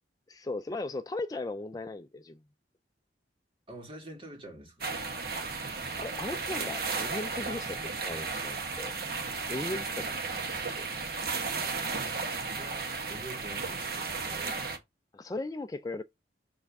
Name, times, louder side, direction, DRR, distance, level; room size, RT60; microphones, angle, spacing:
voice 1, 0.3-2.4 6.0-7.8 8.0-8.9 9.5-10.2 10.5-10.9 15.1-16.0, left 2 dB, 20° left, 0.3 m, -37 dB
voice 2, 3.7-5.0 12.4-14.6, right 1 dB, 30° right, 2.2 m, -46 dB
sound 1, 4.8-14.8, right 4 dB, 55° right, 1.4 m, -34 dB
6.9 x 3.4 x 5.2 m
head